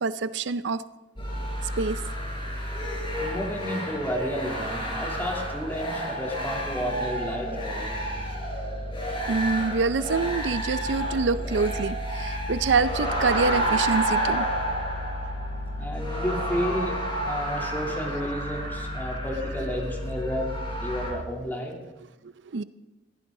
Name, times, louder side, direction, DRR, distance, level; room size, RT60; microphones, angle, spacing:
voice 1, 0.0-0.8 1.8-2.0 9.3-14.4 22.5-22.6, right 4 dB, 75° right, 14 dB, 0.5 m, -26 dB
sound 1, 1.2-21.1, equal, 30° left, 4.8 m, -30 dB
voice 2, 3.2-8.1 15.7-21.7, equal, 10° left, -1 dB, 3.0 m, -32 dB
21.5 x 14.5 x 3.8 m, 1.0 s
head